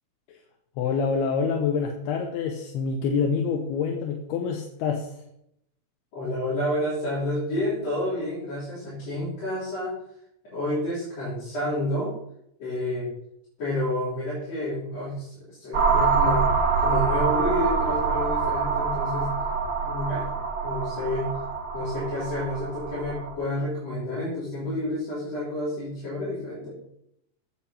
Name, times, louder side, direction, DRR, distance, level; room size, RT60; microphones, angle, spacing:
voice 1, 0.8-5.2, left 5 dB, 85° left, 3 dB, 2.8 m, -26 dB
voice 2, 6.1-10.0 10.5-12.1 12.6-13.1 13.6-16.5 16.8-19.3 19.8-20.3 20.6-21.3 21.7-26.8, left 1 dB, 45° left, -10 dB, 4.0 m, -29 dB
sound 1, 15.7-23.3, right 5 dB, 70° right, 1.0 m, -25 dB
8.1 x 7.9 x 4.2 m, 0.76 s
omnidirectional pair, 4.4 m